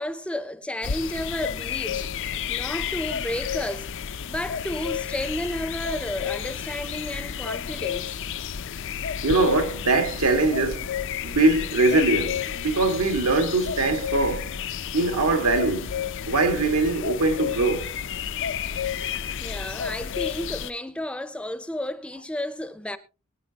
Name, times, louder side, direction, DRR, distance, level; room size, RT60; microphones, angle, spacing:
voice 1, 0.0-2.1 2.5-3.9 4.2-8.2 19.4-23.0, left 1 dB, 5° left, 0.6 m, -32 dB
sound 1, 0.8-20.7, left 8 dB, 55° left, 0.5 m, -31 dB
voice 2, 9.2-10.9 11.2-14.5 14.9-15.9 16.3-18.0, right 2 dB, 80° right, 2.0 m, -22 dB
22.5 x 9.2 x 2.9 m
head